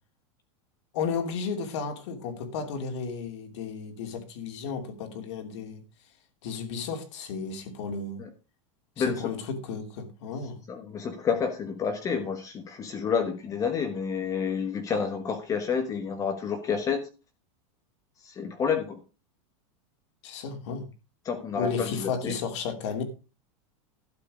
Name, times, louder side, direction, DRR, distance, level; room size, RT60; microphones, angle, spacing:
voice 1, 0.9-5.8 6.4-8.2 9.0-10.6 20.2-20.9 21.5-23.0, left 5 dB, 60° left, 2.8 m, -33 dB
voice 2, 10.7-17.1 18.2-19.0 21.2-22.3, left 6 dB, 20° left, 1.2 m, -29 dB
12.0 x 7.6 x 4.9 m
supercardioid pair, 165°, 16 cm